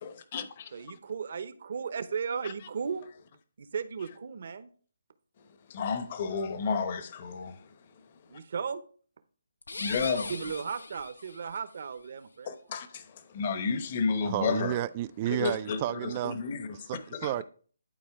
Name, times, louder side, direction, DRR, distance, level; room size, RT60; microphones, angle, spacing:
voice 1, 0.0-0.7 5.7-7.6 9.8-10.3 12.5-13.0 13.3-14.8 15.3-16.7 17.1-17.4, left 5 dB, 35° left, 1.0 m, -31 dB
voice 2, 0.7-3.0 3.6-4.7 8.3-8.8 10.3-12.5, right 6 dB, 55° right, 0.8 m, -35 dB
drill delayed, 9.6-11.6, left 3 dB, 90° left, 0.8 m, -39 dB
voice 3, 14.2-16.4 16.7-17.4, right 13 dB, 25° right, 0.3 m, -32 dB
11.5 x 4.3 x 3.5 m
hypercardioid pair, 160°, 0 cm